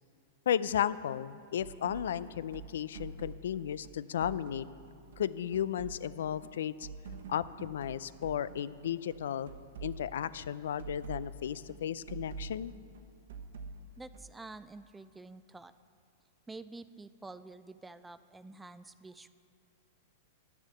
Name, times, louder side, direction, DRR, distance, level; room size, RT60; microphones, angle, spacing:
voice 1, 0.5-4.7 5.2-6.7 7.3-9.5 9.8-12.7, left 9 dB, 75° left, 17 dB, 0.4 m, -34 dB
sound 1, 1.6-8.6 8.9-14.5, right 4 dB, 75° right, 1.0 m, -47 dB
voice 2, 14.0-15.7 16.5-19.3, right 3 dB, 10° right, 13 dB, 0.3 m, -48 dB
10.5 x 7.2 x 7.7 m, 2.5 s
hypercardioid pair, 125°, 0 cm